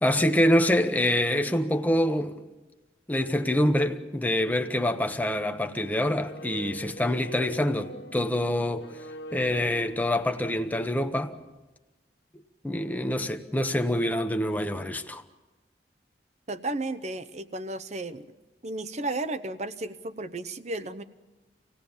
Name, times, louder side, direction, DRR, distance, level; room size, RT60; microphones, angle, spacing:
voice 1, 0.0-2.4 3.1-8.9 9.3-11.3 12.6-15.2, left 1 dB, 10° left, 1.0 m, -25 dB
sound 1, 4.8-11.7, equal, 70° left, 1.4 m, -46 dB
voice 2, 16.5-18.2 18.6-21.0, right 2 dB, 40° right, 0.8 m, -33 dB
26.5 x 17.5 x 7.2 m
head